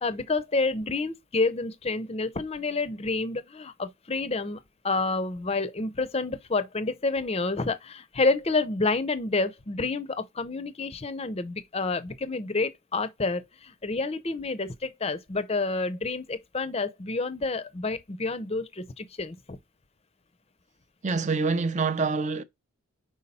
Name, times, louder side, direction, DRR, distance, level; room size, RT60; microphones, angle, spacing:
voice 1, 0.0-4.6 4.8-19.6, left 3 dB, 25° left, 0.6 m, -29 dB
voice 2, 21.0-22.4, right 4 dB, 30° right, 0.5 m, -26 dB
5.4 x 4.7 x 4.2 m
head